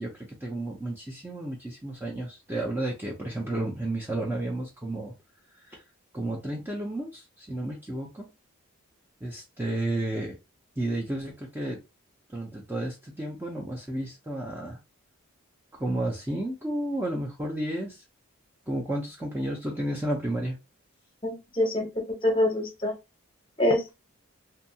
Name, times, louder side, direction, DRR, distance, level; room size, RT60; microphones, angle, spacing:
voice 1, 0.0-5.1 5.6-5.8 6.1-8.3 9.2-10.4 10.8-11.8 12.3-14.8 15.8-18.0 18.7-20.6, right 1 dB, 10° right, -2 dB, 0.4 m, -32 dB
voice 2, 21.2-21.9 22.2-22.9 23.6-23.9, left 1 dB, 20° left, 3 dB, 0.7 m, -25 dB
2.6 x 2.3 x 2.7 m, 0.25 s
head